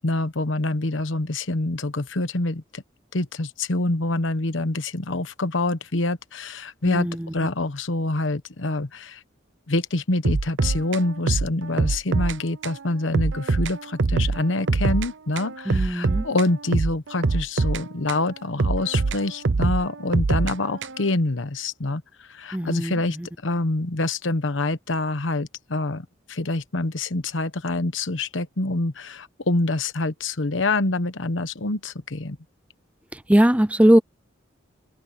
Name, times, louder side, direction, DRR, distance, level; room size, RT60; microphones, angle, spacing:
voice 1, 0.0-2.8 3.1-7.1 7.3-9.2 9.7-23.2 23.4-32.4, left 2 dB, 80° left, 1.1 m, -26 dB
sound 1, 10.2-12.4 12.6-12.8 13.1-15.1 15.4-18.2 18.6-21.1, right 3 dB, 70° right, 0.7 m, -24 dB
voice 2, 15.7-16.2 22.5-22.9 33.3-34.0, right 1 dB, 5° right, 0.5 m, -19 dB
head